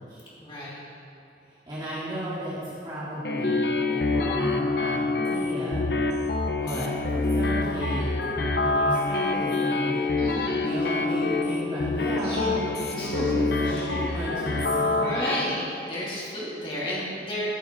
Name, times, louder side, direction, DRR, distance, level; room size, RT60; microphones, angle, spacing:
voice 1, 0.4-0.8 10.1-10.8 12.1-12.5 12.9-14.0 14.8-17.5, left 1 dB, 30° left, -7 dB, 2.7 m, -33 dB
voice 2, 1.4-5.9 6.6-8.1 8.6-10.0 10.6-14.8, equal, 25° right, -12 dB, 2.8 m, -34 dB
sound 1, 3.2-15.4, left 3 dB, 65° left, 0.8 m, -26 dB
14.5 x 7.1 x 4.5 m, 2.8 s
head